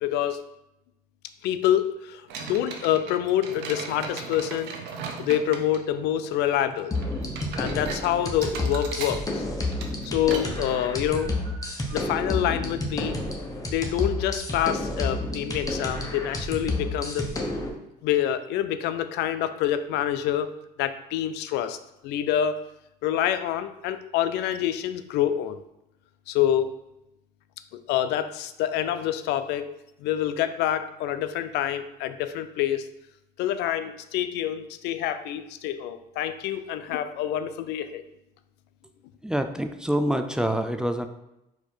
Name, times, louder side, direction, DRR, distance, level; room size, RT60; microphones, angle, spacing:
voice 1, 0.0-0.4 1.4-4.8 5.2-7.0 7.6-9.4 10.1-11.3 11.9-13.2 13.7-17.3 18.0-20.5 20.8-21.8 22.0-22.6 23.0-25.6 26.3-26.8 27.9-29.7 30.0-32.9 33.4-38.0, left 11 dB, 85° left, 11 dB, 0.4 m, -26 dB
sound 1, 2.3-13.2, right 5 dB, 85° right, 0.7 m, -40 dB
sound 2, 6.9-17.7, left 1 dB, 20° left, 0.8 m, -30 dB
voice 2, 39.2-41.1, equal, 5° right, 7 dB, 0.3 m, -26 dB
4.3 x 2.6 x 4.3 m, 0.89 s
cardioid pair, 110°, 17 cm